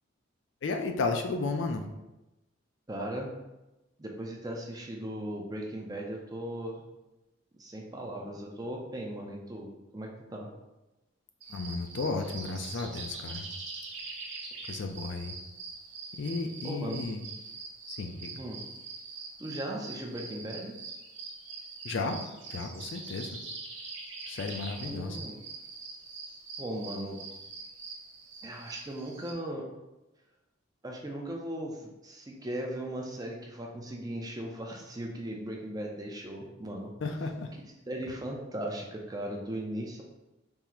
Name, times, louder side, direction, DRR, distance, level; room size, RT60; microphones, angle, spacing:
voice 1, 0.6-1.9 11.5-13.5 14.7-15.4 16.2-17.2 17.9-18.3 21.8-22.2 22.5-23.4 24.3-25.2 37.0-37.5, left 3 dB, 60° left, 5 dB, 0.4 m, -33 dB
voice 2, 2.9-3.3 4.0-6.8 7.6-10.5 16.6-17.0 18.4-18.6 19.4-20.7 24.9-25.4 26.6-27.2 28.4-29.7 30.8-36.9 37.5-40.0, right 1 dB, 20° right, 0 dB, 0.4 m, -38 dB
sound 1, 11.4-29.3, right 4 dB, 65° right, 0.7 m, -43 dB
3.6 x 2.0 x 4.3 m, 1.0 s
head